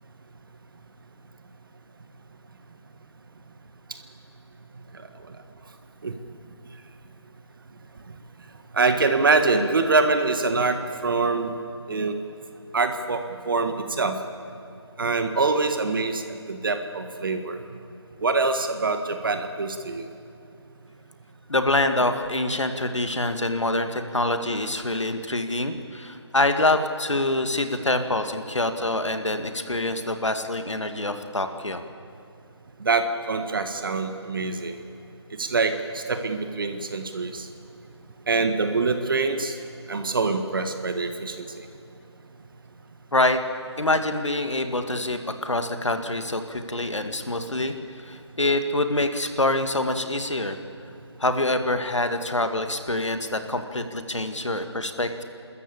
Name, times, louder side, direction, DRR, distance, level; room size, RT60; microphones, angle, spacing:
voice 1, 8.7-11.5 11.9-12.1 12.7-14.2 15.0-16.2 16.5-17.6 18.2-20.1 32.8-34.8 35.4-37.5 38.3-39.5 39.9-41.5, right 3 dB, 50° right, 7 dB, 1.6 m, -24 dB
voice 2, 21.5-31.8 43.1-43.4 43.8-50.6 51.2-55.2, left 2 dB, 85° left, 8 dB, 2.0 m, -25 dB
29.5 x 13.5 x 8.6 m, 2.6 s
figure-of-eight pair, 155°, 15 cm